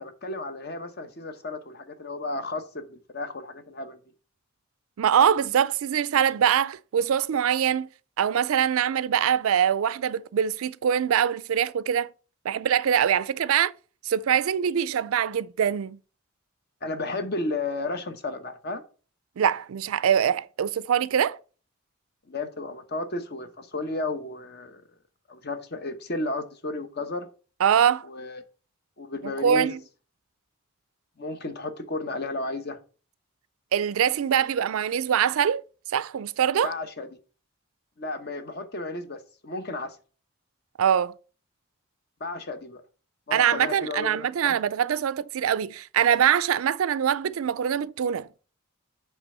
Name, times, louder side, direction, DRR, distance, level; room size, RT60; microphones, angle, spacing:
voice 1, 0.0-4.0 16.8-18.8 22.3-24.8 25.3-27.3 28.0-28.4 29.0-29.8 31.2-32.8 36.6-37.1 38.0-40.0 42.2-42.8 43.3-44.6, left 2 dB, 50° left, 0.9 m, -33 dB
voice 2, 5.0-7.9 8.2-12.1 12.4-13.7 14.0-16.0 19.4-21.4 27.6-28.1 29.2-29.8 33.7-35.6 35.9-36.7 40.8-41.1 43.3-48.3, right 8 dB, 80° right, 0.4 m, -23 dB
8.1 x 3.4 x 5.4 m
head